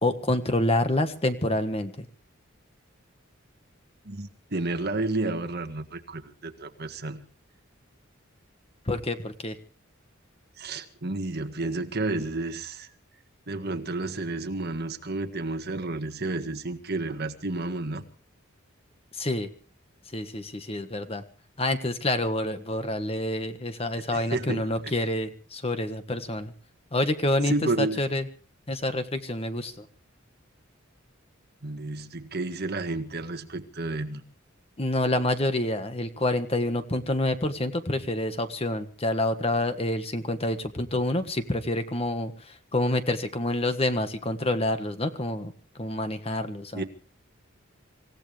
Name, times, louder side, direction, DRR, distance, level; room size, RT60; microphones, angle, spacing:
voice 1, 0.0-2.1 8.9-9.6 19.1-19.5 20.1-21.2 21.6-26.5 26.9-28.3 28.7-29.9 34.8-46.8, left 1 dB, 30° left, 8 dB, 1.5 m, -27 dB
voice 2, 4.0-7.3 10.6-12.9 13.5-18.1 23.9-24.9 27.5-28.0 31.6-34.2 46.7-46.8, right 2 dB, 50° right, 7 dB, 1.7 m, -31 dB
26.0 x 16.0 x 3.4 m, 0.41 s
head